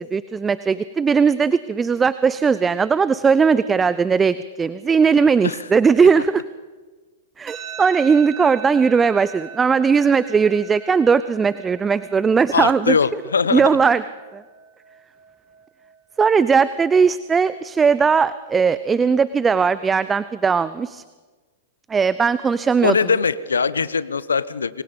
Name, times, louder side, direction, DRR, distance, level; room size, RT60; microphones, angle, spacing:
voice 1, 0.0-6.4 7.4-13.0 13.5-14.0 14.3-14.4 16.2-21.0 21.9-23.0, right 5 dB, 15° right, 16 dB, 0.7 m, -18 dB
sound 1, 7.5-20.4, right 7 dB, 35° right, 3.5 m, -42 dB
voice 2, 12.5-13.7 22.8-24.8, left 5 dB, 80° left, 18 dB, 1.0 m, -21 dB
28.0 x 23.5 x 5.4 m, 1.3 s
figure-of-eight pair, 105°, 0 cm